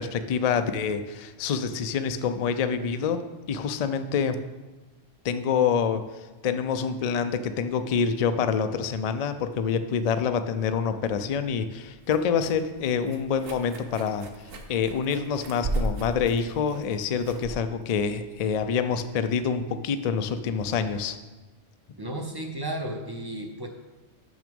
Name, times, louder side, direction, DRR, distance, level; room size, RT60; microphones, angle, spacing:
voice 1, 0.0-3.2 3.5-4.4 5.2-6.0 6.4-14.3 14.7-21.2, left 6 dB, 70° left, 9 dB, 0.3 m, -26 dB
sound 1, 11.3-19.1, right 1 dB, 55° right, 1.0 m, -36 dB
voice 2, 22.0-23.7, right 1 dB, 30° right, 3 dB, 0.5 m, -33 dB
6.2 x 6.1 x 5.2 m, 1.2 s
omnidirectional pair, 1.3 m